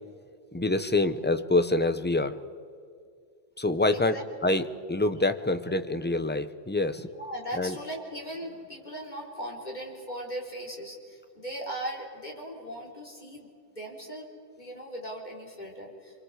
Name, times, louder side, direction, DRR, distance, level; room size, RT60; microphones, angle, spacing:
voice 1, 0.5-2.4 3.6-4.2 4.4-7.1 7.5-7.8, left 2 dB, 10° left, 10 dB, 0.6 m, -26 dB
voice 2, 3.9-4.3 7.1-14.3 14.6-16.2, right 1 dB, 35° left, -1 dB, 4.0 m, -38 dB
27.0 x 24.0 x 4.9 m, 2.3 s
omnidirectional pair, 1.4 m